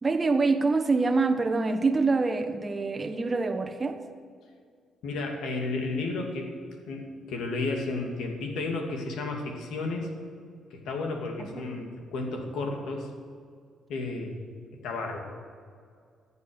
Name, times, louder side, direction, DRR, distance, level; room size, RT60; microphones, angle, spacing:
voice 1, 0.0-4.0 11.4-11.6, right 3 dB, 30° right, 7 dB, 1.2 m, -25 dB
voice 2, 5.0-6.5 6.9-10.1 10.7-13.1 13.9-14.4 14.7-15.2, left 3 dB, 80° left, 2 dB, 2.5 m, -32 dB
14.5 x 8.2 x 9.7 m, 2.1 s
cardioid pair, 90°, 0 cm